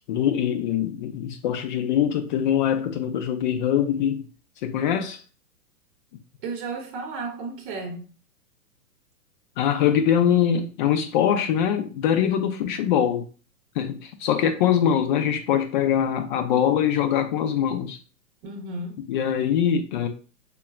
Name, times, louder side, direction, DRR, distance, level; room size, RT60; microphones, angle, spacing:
voice 1, 0.1-4.2 4.6-5.2 9.6-13.3 13.8-18.0 19.1-20.1, left 9 dB, 35° left, 0.5 m, -23 dB
voice 2, 6.4-8.1 18.4-19.0, right 3 dB, 35° right, 0.9 m, -33 dB
5.4 x 2.2 x 2.3 m
figure-of-eight pair, 115°, 46 cm